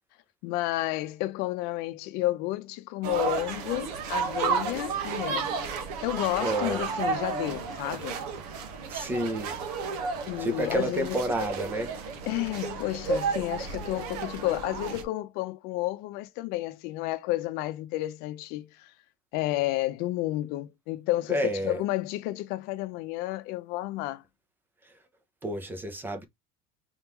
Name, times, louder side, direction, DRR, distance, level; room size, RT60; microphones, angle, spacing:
voice 1, 0.4-5.5 6.0-8.2 10.3-11.2 12.3-18.9 19.3-24.2, left 17 dB, 55° left, 0.6 m, -31 dB
sound 1, 3.0-15.0, right 5 dB, 85° right, 1.3 m, -32 dB
voice 2, 6.4-6.9 8.9-9.5 10.4-11.9 21.3-21.8 24.8-24.9 25.4-26.3, right 1 dB, 10° right, 0.6 m, -30 dB
4.2 x 3.6 x 3.0 m
cardioid pair, 170°, 20 cm